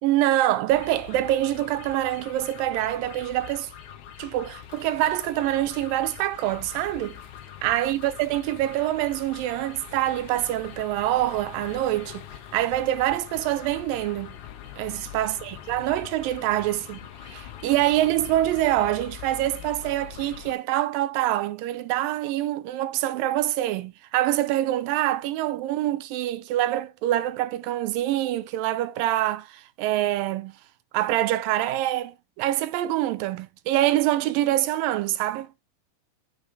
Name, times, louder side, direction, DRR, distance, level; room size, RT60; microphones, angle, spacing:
voice 1, 0.0-3.7 4.2-7.2 7.6-12.3 12.5-14.4 14.8-30.5 30.9-35.5, right 14 dB, 85° right, 2.4 m, -25 dB
sound 1, 0.7-20.5, left 10 dB, 70° left, 2.3 m, -43 dB
8.4 x 6.6 x 3.3 m
omnidirectional pair, 4.0 m